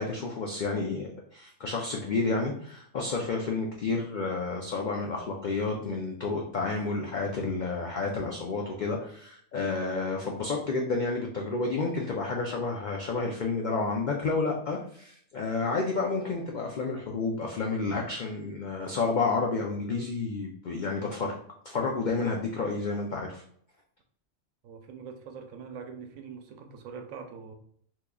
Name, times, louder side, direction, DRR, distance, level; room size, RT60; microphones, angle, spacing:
voice 1, 0.0-21.4 21.6-23.4, left 3 dB, 80° left, 0 dB, 0.4 m, -30 dB
voice 2, 24.6-27.5, right 6 dB, 85° right, 6 dB, 1.0 m, -43 dB
3.6 x 3.0 x 2.3 m, 0.62 s
omnidirectional pair, 1.4 m